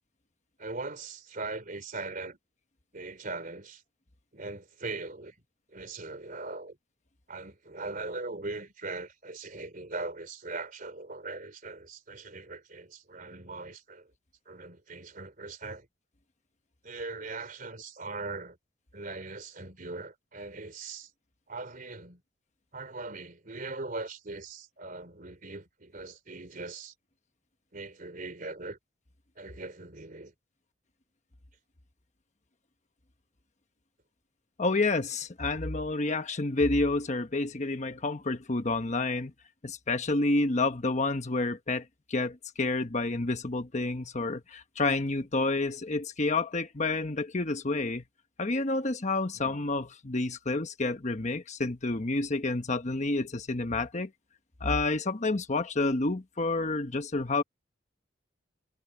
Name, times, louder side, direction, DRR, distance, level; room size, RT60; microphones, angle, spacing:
voice 1, 0.6-2.4 2.9-3.8 4.3-5.4 5.7-6.8 7.3-14.1 14.5-15.9 16.8-18.6 18.9-21.1 21.5-22.2 22.7-26.9 27.7-28.8 29.4-30.3 49.3-49.6, right 3 dB, 45° right, 3.6 m, -40 dB
voice 2, 34.6-39.3 39.6-48.0 48.4-54.1 54.6-57.4, left 2 dB, 40° left, 1.1 m, -29 dB
head